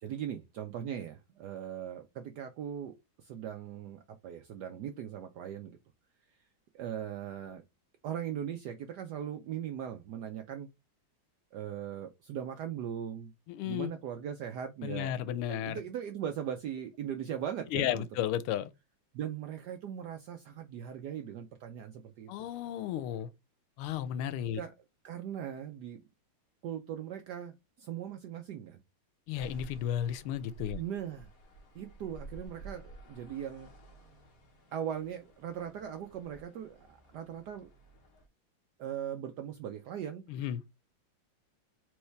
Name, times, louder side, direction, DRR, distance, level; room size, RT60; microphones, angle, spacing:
voice 1, 0.0-5.8 6.7-7.6 8.0-10.7 11.5-13.3 13.6-18.0 19.1-22.3 24.5-24.7 25.0-26.0 26.6-28.8 30.7-31.3 31.7-33.7 34.7-37.7 38.8-40.3, right 9 dB, 80° right, 0.9 m, -39 dB
voice 2, 13.5-13.9 14.8-15.8 17.7-18.7 22.3-23.3 23.8-24.6 29.3-30.8 40.3-40.6, left 11 dB, 85° left, 1.5 m, -33 dB
sound 1, 29.3-38.3, right 2 dB, 45° left, 1.5 m, -52 dB
4.7 x 3.1 x 3.2 m
omnidirectional pair, 2.3 m